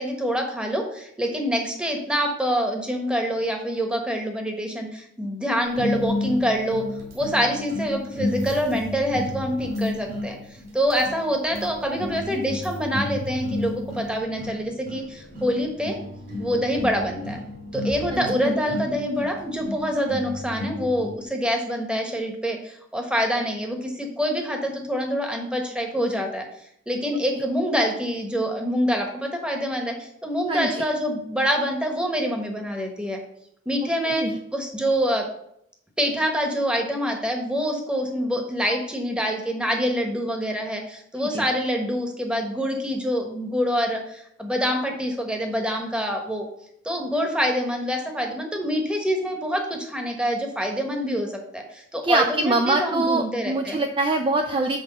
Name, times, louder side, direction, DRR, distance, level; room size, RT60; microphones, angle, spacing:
voice 1, 0.0-6.8 7.1-10.4 10.7-16.0 16.4-17.4 17.7-26.5 26.9-33.2 33.6-35.3 36.0-46.5 46.8-53.8, equal, 5° right, 3 dB, 1.2 m, -26 dB
sound 1, 5.7-21.2, left 1 dB, 50° right, 2.8 m, -32 dB
voice 2, 18.1-18.6 30.5-30.8 34.1-34.4 41.2-41.4 52.0-54.8, right 2 dB, 25° right, 5 dB, 0.4 m, -24 dB
6.2 x 4.9 x 6.7 m, 0.73 s
head